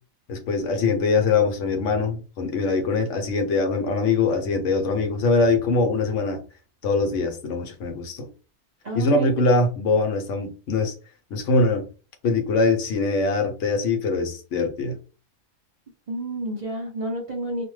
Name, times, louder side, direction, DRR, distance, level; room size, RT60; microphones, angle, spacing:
voice 1, 0.3-6.4 6.8-8.3 8.9-10.9 11.3-11.9 12.2-15.0, left 3 dB, 70° left, 1.0 m, -22 dB
voice 2, 8.8-9.3 16.1-17.6, right 1 dB, 45° right, 0.5 m, -30 dB
2.5 x 2.1 x 3.1 m
omnidirectional pair, 1.3 m